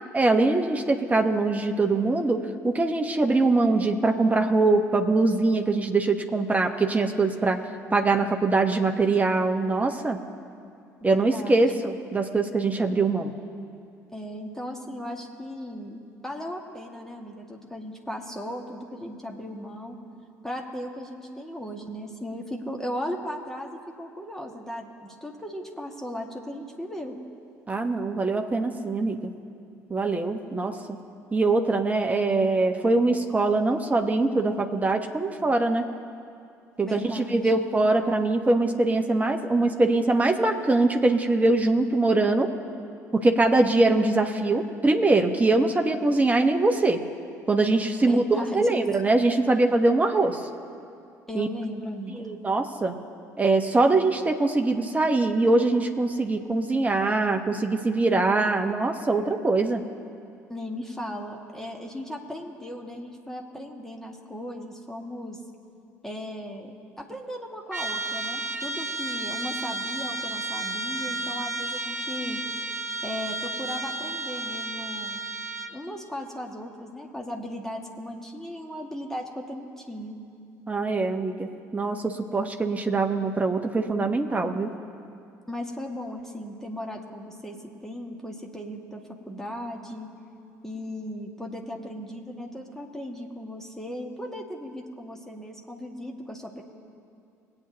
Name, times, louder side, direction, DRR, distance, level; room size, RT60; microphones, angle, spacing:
voice 1, 0.1-7.6 7.9-10.2 11.0-13.3 27.7-29.3 29.9-31.0 31.3-35.9 36.8-42.5 43.1-47.0 47.5-48.2 48.5-50.4 51.3-51.5 52.2-53.0 53.4-59.8 80.7-84.7, right 2 dB, 15° right, 4 dB, 1.3 m, -23 dB
voice 2, 11.0-11.8 14.1-20.0 20.4-27.2 36.8-37.6 48.1-48.9 51.3-52.3 60.5-65.4 66.0-72.4 73.0-75.2 75.7-80.2 85.5-90.1 90.6-96.6, equal, 5° left, 0 dB, 2.0 m, -37 dB
Trumpet, 67.7-75.8, right 2 dB, 85° right, 0.5 m, -32 dB
21.5 x 8.9 x 3.0 m, 2.5 s
figure-of-eight pair, 55°, 9 cm